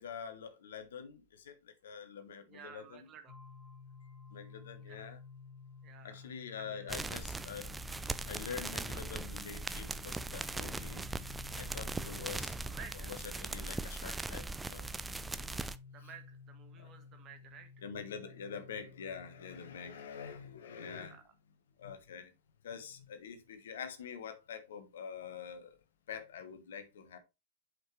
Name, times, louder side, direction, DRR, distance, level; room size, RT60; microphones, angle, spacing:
voice 1, 0.0-3.0 4.3-5.2 6.0-7.7 8.3-11.0 11.5-12.6 13.1-14.9 16.8-16.9 17.8-21.2 21.8-22.3 22.6-25.8 26.1-27.2, left 7 dB, 60° left, 1.2 m, -45 dB
voice 2, 2.5-3.4 4.8-5.1 5.8-6.2 6.5-7.0 12.6-13.2 15.9-17.9 20.9-21.3, right 6 dB, 30° right, 1.5 m, -54 dB
sound 1, 3.3-19.8, left 5 dB, 10° left, 4.0 m, -53 dB
sound 2, 6.9-15.8, right 3 dB, 10° right, 0.4 m, -40 dB
7.8 x 5.3 x 3.2 m
figure-of-eight pair, 90°, 0 cm